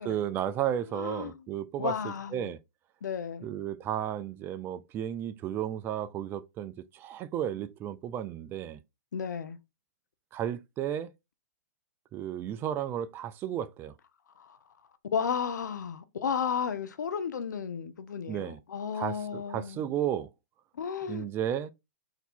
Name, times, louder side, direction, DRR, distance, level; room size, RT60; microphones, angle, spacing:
voice 1, 0.0-2.6 3.4-8.8 10.3-11.1 12.1-13.9 18.3-18.6 19.0-20.3 21.1-21.7, right 10 dB, 25° right, 0.4 m, -33 dB
voice 2, 0.9-1.4 1.8-2.5 3.0-3.5 9.1-9.6 14.4-14.6 15.1-19.9 20.7-21.3, left 7 dB, 80° left, 0.8 m, -33 dB
4.0 x 2.7 x 4.3 m
hypercardioid pair, 135°, 10 cm